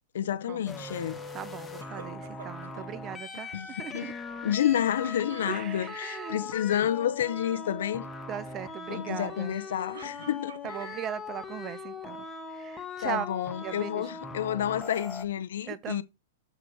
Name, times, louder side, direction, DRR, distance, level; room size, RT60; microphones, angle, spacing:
voice 1, 0.1-1.2 3.5-4.1 4.4-8.1 8.9-10.9 13.0-16.0, left 10 dB, 75° left, 0.8 m, -30 dB
sound 1, 0.7-15.3, left 4 dB, 10° left, 1.1 m, -40 dB
voice 2, 1.3-4.1 5.4-6.5 8.3-9.6 10.6-13.3 13.6-14.2 15.7-16.0, right 10 dB, 30° right, 0.7 m, -39 dB
sound 2, 1.8-2.9 4.7-6.0 6.7-7.0 7.3-7.7 9.5-11.1 11.6-12.4, right 6 dB, 85° right, 0.9 m, -50 dB
6.9 x 4.7 x 6.2 m
hypercardioid pair, 130°, 0 cm